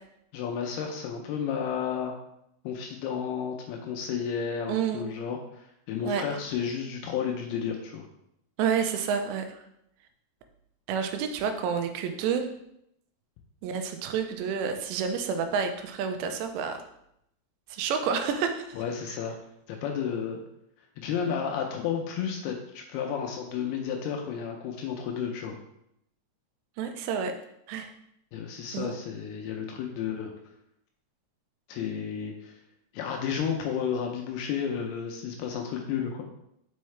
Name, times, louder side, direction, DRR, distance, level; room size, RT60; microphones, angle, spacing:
voice 1, 0.3-2.1 2.6-8.1 18.7-19.4 19.7-20.4 21.0-25.6 28.3-30.3 31.7-32.6 32.9-36.2, left 7 dB, 80° left, 2 dB, 2.4 m, -32 dB
voice 2, 4.7-5.0 6.0-6.2 8.6-9.6 10.9-12.5 13.6-16.8 17.7-18.7 26.8-27.3 27.7-27.9 28.7-29.0, right 6 dB, 85° right, 6 dB, 2.8 m, -29 dB
5.6 x 5.6 x 3.2 m, 0.77 s
omnidirectional pair, 4.9 m